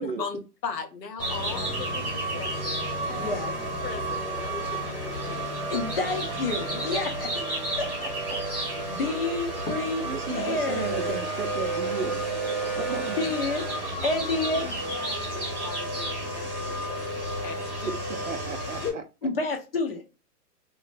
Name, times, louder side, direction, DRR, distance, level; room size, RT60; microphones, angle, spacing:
voice 1, 0.0-3.3 3.8-5.6 14.6-18.0 18.8-19.0, left 6 dB, 90° left, 1.0 m, -38 dB
sound 1, 1.2-18.9, right 2 dB, 5° right, 0.7 m, -31 dB
sound 2, 1.3-9.3 9.9-11.1 11.7-11.8, left 6 dB, 65° left, 0.8 m, -43 dB
voice 2, 3.1-3.5 5.7-7.4 7.8-8.4 8.9-11.2 13.2-13.7 14.0-14.7 19.2-20.1, left 3 dB, 40° left, 0.5 m, -29 dB
voice 3, 10.0-12.2 12.7-13.3 17.8-19.0, right 5 dB, 50° right, 0.5 m, -34 dB
3.1 x 2.1 x 2.4 m
hypercardioid pair, 175°, 48 cm